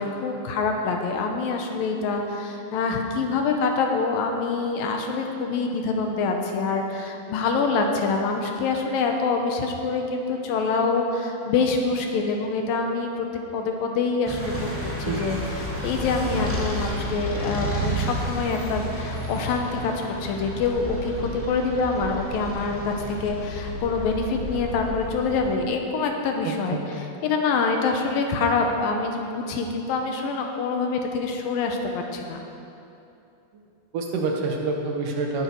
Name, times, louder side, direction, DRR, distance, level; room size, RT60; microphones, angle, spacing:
voice 1, 0.0-13.3 13.5-14.7 15.0-19.9 20.2-32.4, left 4 dB, 80° left, 3 dB, 2.7 m, -25 dB
sound 1, 14.2-25.5, right 1 dB, 5° left, 0.9 m, -31 dB
voice 2, 26.5-26.9 33.9-35.4, right 3 dB, 70° right, 1 dB, 2.6 m, -27 dB
18.5 x 8.9 x 4.7 m, 2.7 s
omnidirectional pair, 4.2 m